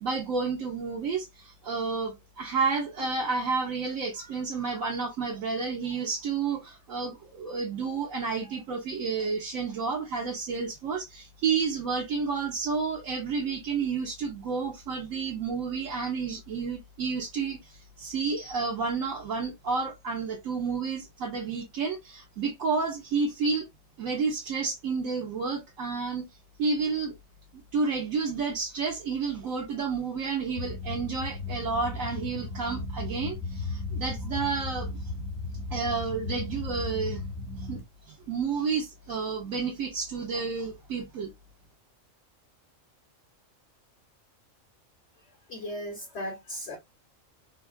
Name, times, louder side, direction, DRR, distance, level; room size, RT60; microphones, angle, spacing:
voice 1, 0.0-23.7 24.0-26.2 26.6-27.1 27.5-34.9 35.7-37.2 37.6-41.3, right 5 dB, 80° right, 1.2 m, -30 dB
sound 1, 30.6-37.8, left 3 dB, 80° left, 1.3 m, -35 dB
voice 2, 45.5-46.8, equal, 55° left, 1.5 m, -36 dB
3.5 x 2.3 x 2.2 m
omnidirectional pair, 1.4 m